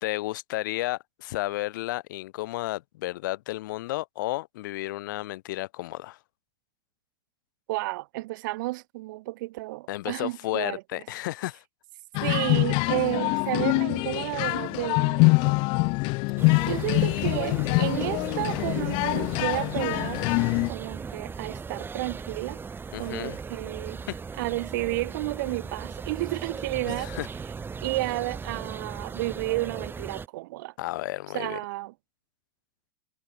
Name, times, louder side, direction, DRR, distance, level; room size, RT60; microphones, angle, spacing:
voice 1, 0.0-6.2 9.9-11.6 22.9-23.4 24.1-24.2 26.9-27.3 30.8-31.6, left 17 dB, 70° left, 1.2 m, -32 dB
voice 2, 7.7-10.8 12.2-15.6 16.6-20.2 20.7-22.6 23.0-24.0 24.4-27.1 27.8-30.7 31.3-31.9, right 20 dB, 65° right, 3.5 m, -31 dB
sound 1, 12.1-20.7, left 29 dB, 55° left, 0.5 m, -24 dB
sound 2, 16.4-30.3, right 5 dB, 20° right, 4.7 m, -38 dB
hypercardioid pair, 100°, 11 cm